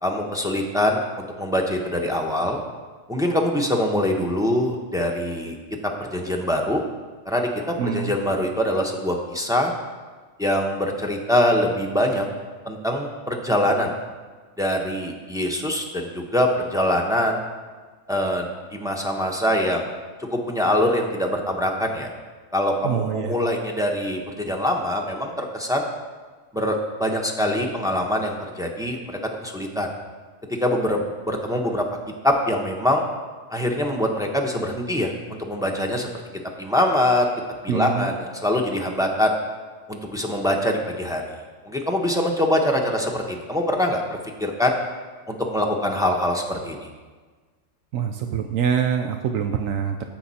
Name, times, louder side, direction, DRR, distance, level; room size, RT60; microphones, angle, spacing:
voice 1, 0.0-2.6 3.1-5.6 5.8-6.8 7.3-9.7 10.4-12.3 12.6-13.9 14.6-17.4 18.1-19.9 20.2-22.1 22.5-25.8 26.5-29.9 30.6-31.9 32.2-33.0 33.5-36.1 36.6-37.3 37.6-39.3 39.9-41.2 41.6-44.7 45.3-46.8, left 1 dB, 5° right, 0 dB, 0.9 m, -24 dB
voice 2, 7.8-8.2 22.8-23.4 37.7-38.1 47.9-50.0, right 7 dB, 80° right, 5 dB, 1.0 m, -25 dB
15.0 x 6.0 x 4.2 m, 1.4 s
omnidirectional pair, 1.4 m